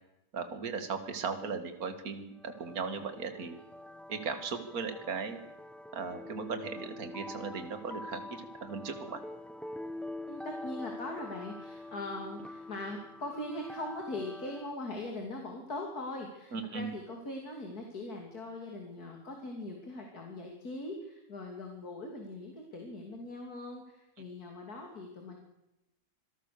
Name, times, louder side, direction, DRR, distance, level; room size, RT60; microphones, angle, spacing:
voice 1, 0.3-3.6 4.1-5.4 5.9-9.2 16.5-16.9, right 5 dB, 55° right, 8 dB, 2.4 m, -37 dB
sound 1, 2.4-14.7, left 1 dB, ahead, 0.4 m, -45 dB
voice 2, 10.3-25.4, left 2 dB, 60° left, 2 dB, 3.4 m, -41 dB
26.0 x 18.0 x 6.8 m, 0.93 s
omnidirectional pair, 1.9 m